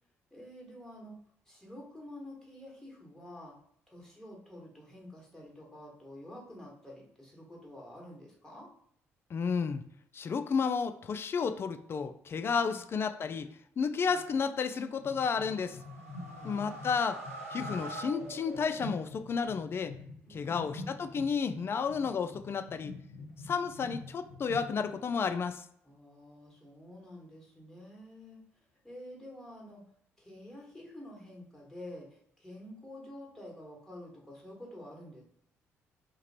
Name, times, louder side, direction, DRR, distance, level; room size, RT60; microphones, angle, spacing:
voice 1, 0.3-1.1 1.4-3.5 3.9-8.7 12.4-12.8 14.0-14.3 16.1-16.8 20.2-20.7 25.8-28.4 28.8-29.8 30.2-35.2, left 1 dB, 5° left, -3 dB, 1.5 m, -49 dB
voice 2, 9.3-9.8 10.1-13.5 13.8-15.8 16.4-17.2 17.5-20.0 20.3-22.9 23.4-25.6, left 5 dB, 35° left, 9 dB, 0.3 m, -32 dB
sound 1, 15.0-25.1, left 2 dB, 80° left, 1.0 m, -46 dB
sound 2, 15.5-19.2, right 1 dB, 85° right, 0.4 m, -44 dB
3.0 x 2.4 x 4.3 m, 0.68 s
figure-of-eight pair, 45°, 7 cm